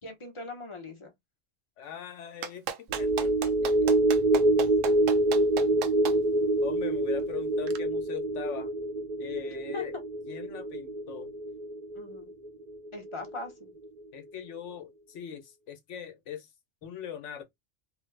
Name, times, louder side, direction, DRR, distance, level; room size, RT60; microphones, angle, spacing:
voice 1, 0.0-1.1 9.7-9.8 11.9-12.3 12.9-13.7, left 2 dB, 30° left, 0.7 m, -40 dB
voice 2, 1.8-3.9 6.6-8.7 9.2-9.9 10.3-11.3 14.1-16.5 16.8-17.4, left 8 dB, 75° left, 1.0 m, -41 dB
Clapping, 2.4-6.1 7.7-7.8, right 8 dB, 85° right, 1.0 m, -34 dB
sound 1, 2.9-13.5 13.8-14.0, right 2 dB, 60° right, 0.4 m, -27 dB
3.2 x 2.1 x 3.2 m
omnidirectional pair, 1.3 m